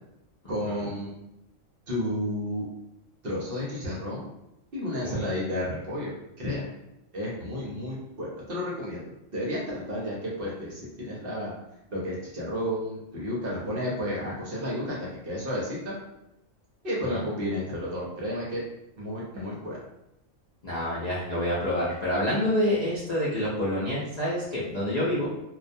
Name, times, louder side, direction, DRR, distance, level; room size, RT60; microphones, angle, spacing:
voice 1, 0.5-1.1 1.9-2.7 3.2-4.2 4.7-6.1 6.4-6.7 7.1-9.0 9.3-11.5 11.9-15.0 15.2-16.0 16.8-18.6 19.0-19.8, left 1 dB, 55° right, -5 dB, 0.7 m, -31 dB
voice 2, 20.6-25.3, left 1 dB, 55° left, -9 dB, 0.4 m, -27 dB
2.3 x 2.1 x 2.6 m, 0.86 s
omnidirectional pair, 1.3 m